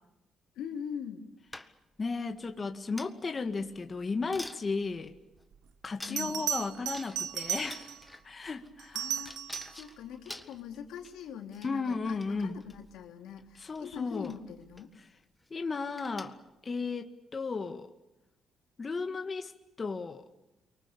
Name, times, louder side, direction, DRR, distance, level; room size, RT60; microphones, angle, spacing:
voice 1, 0.5-1.3 6.0-6.5 8.9-14.9, left 8 dB, 90° left, 3.1 m, -43 dB
sound 1, 1.5-2.0 3.0-3.4 3.9-4.0 4.3-4.6 5.4-5.5 6.0-6.5 6.9-7.4 7.6-8.7 9.2-11.3 11.5-11.7 12.1-12.8 13.6-13.8 14.1-14.4 14.8-14.9 15.2-15.5 16.0-16.5, left 1 dB, 10° left, 1.7 m, -47 dB
voice 2, 2.0-5.1 5.8-7.9 8.2-9.0 11.6-12.6 13.6-14.3 15.5-16.4 16.6-17.9 18.8-19.5 19.8-20.2, left 4 dB, 35° left, 1.9 m, -34 dB
Bell, 5.5-5.6 6.2-8.1 8.8-9.9 12.5-12.8, right 9 dB, 80° right, 1.4 m, -35 dB
30.0 x 24.0 x 6.9 m
cardioid pair, 90°, 0 cm